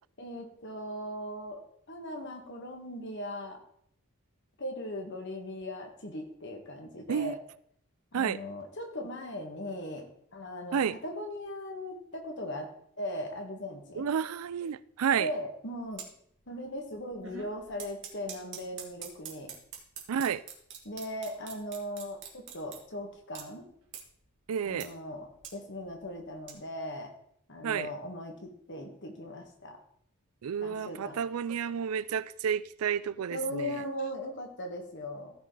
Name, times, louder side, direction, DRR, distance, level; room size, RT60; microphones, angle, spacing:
voice 1, 0.2-1.6 1.9-3.6 4.6-7.4 8.1-12.7 13.0-14.1 15.2-16.0 16.5-19.5 20.8-23.7 24.6-27.1 27.5-29.8 30.6-31.2 33.3-35.3, equal, 55° left, 1.8 m, -39 dB
voice 2, 14.0-15.3 20.1-20.4 24.5-24.9 27.6-27.9 30.4-33.8, right 7 dB, 80° right, 0.4 m, -30 dB
sound 1, 15.8-16.1 16.5-16.8 17.0-22.8 23.3-23.4 23.9-24.0 24.5-24.9 25.1-26.5, right 7 dB, 55° right, 2.0 m, -44 dB
15.5 x 5.3 x 3.9 m
head